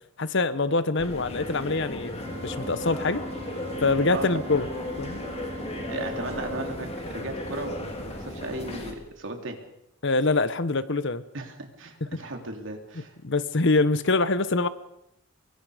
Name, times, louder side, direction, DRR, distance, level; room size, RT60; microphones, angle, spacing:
voice 1, 0.2-3.2 3.8-4.7 5.0-5.2 10.0-11.2 12.1-12.2 13.2-14.7, left 3 dB, 60° left, 14 dB, 1.1 m, -24 dB
sound 1, 1.0-8.9, left 1 dB, 30° left, 3.6 m, -35 dB
Organ, 2.2-7.3, right 2 dB, 30° right, 2.2 m, -41 dB
voice 2, 5.9-9.6 11.3-13.2, right 2 dB, 65° right, 3 dB, 3.5 m, -36 dB
25.0 x 23.0 x 5.1 m, 0.81 s
head